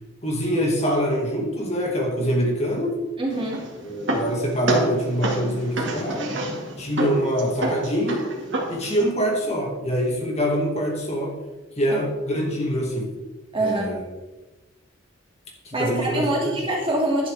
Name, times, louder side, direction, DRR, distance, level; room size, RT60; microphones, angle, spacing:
voice 1, 0.2-3.0 3.8-6.3 6.8-8.3 8.7-11.3 11.8-13.1 13.6-14.0 15.6-16.5, equal, 35° left, -1 dB, 2.2 m, -24 dB
voice 2, 3.2-3.6 11.9-12.0 13.5-13.9 15.7-17.3, right 1 dB, 25° right, -2 dB, 2.6 m, -25 dB
sound 1, 3.3-9.1, right 2 dB, 65° right, 2.2 m, -28 dB
11.5 x 11.0 x 3.6 m, 1.1 s
head